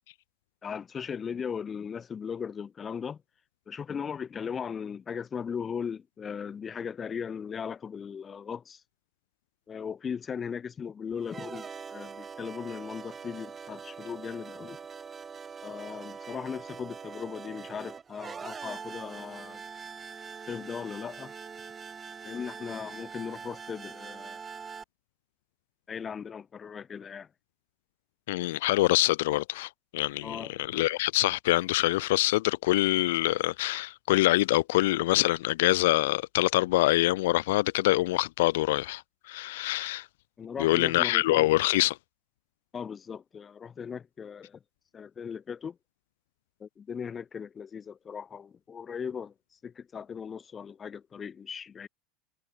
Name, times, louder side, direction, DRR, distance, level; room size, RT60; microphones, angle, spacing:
voice 1, 0.6-3.2 3.7-8.8 9.7-14.8 15.6-19.6 20.5-21.3 22.2-24.4 25.9-27.3 30.2-30.5 40.4-41.5 42.7-44.6 44.9-45.8 46.6-49.3 49.6-51.9, left 7 dB, 20° left, 0.8 m, -38 dB
sound 1, 11.2-24.8, right 6 dB, 20° right, 1.7 m, -43 dB
voice 2, 28.3-40.1 40.6-42.0, left 18 dB, 80° left, 0.4 m, -25 dB
supercardioid pair, 140°, 0 cm